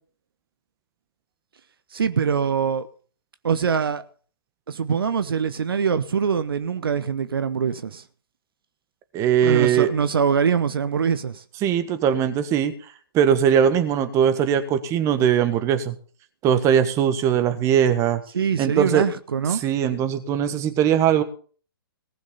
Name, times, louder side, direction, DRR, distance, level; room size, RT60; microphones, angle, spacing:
voice 1, 1.9-2.9 3.4-4.0 4.7-8.0 9.4-11.4 18.3-19.6, right 6 dB, 70° right, 0.9 m, -23 dB
voice 2, 9.1-9.9 11.6-12.7 13.1-15.9 16.4-18.2 18.6-19.0 19.5-21.2, right 9 dB, 25° right, 1.5 m, -20 dB
18.5 x 6.4 x 6.9 m
figure-of-eight pair, 130°, 13 cm